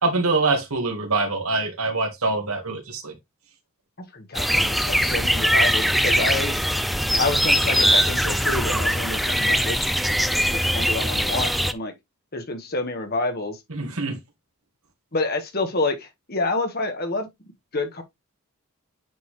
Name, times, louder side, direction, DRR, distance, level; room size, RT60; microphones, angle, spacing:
voice 1, 0.0-3.1 13.7-14.2, right 3 dB, 85° right, 1.9 m, -24 dB
voice 2, 4.1-6.6 7.2-9.9 10.5-11.9 12.3-13.6 15.1-17.3 17.7-18.0, left 2 dB, 45° left, 1.6 m, -28 dB
sound 1, 4.3-11.7, equal, ahead, 0.4 m, -21 dB
9.3 x 4.0 x 3.2 m
head